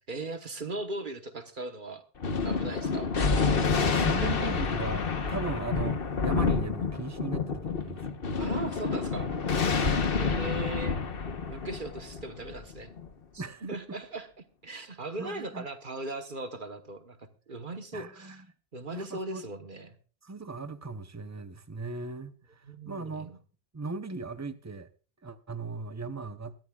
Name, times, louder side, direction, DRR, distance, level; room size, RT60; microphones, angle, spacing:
voice 1, 0.0-2.0 2.4-3.1 3.8-4.5 8.4-9.3 10.2-11.0 11.5-12.9 13.3-18.4 18.7-19.9 22.6-23.4, right 2 dB, 50° right, 1.3 m, -39 dB
Thunder, 2.2-13.1, left 5 dB, 65° left, 1.3 m, -28 dB
voice 2, 3.7-8.0 9.8-10.0 13.4-13.7 15.2-15.7 17.9-18.5 18.9-19.5 20.2-23.3 23.7-24.9 25.2-26.5, right 3 dB, 20° right, 0.7 m, -38 dB
23.0 x 14.0 x 2.4 m
omnidirectional pair, 1.1 m